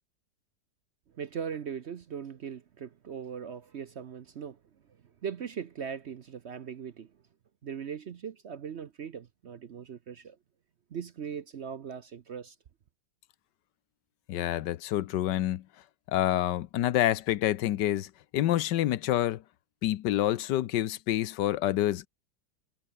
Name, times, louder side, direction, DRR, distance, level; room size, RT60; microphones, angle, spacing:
voice 1, 1.1-4.6 5.2-7.1 7.6-10.4 10.9-12.6, right 7 dB, 55° right, 0.8 m, -39 dB
voice 2, 14.3-15.6 16.1-19.4 19.8-22.1, left 13 dB, 90° left, 1.4 m, -27 dB
omnidirectional pair, 1.8 m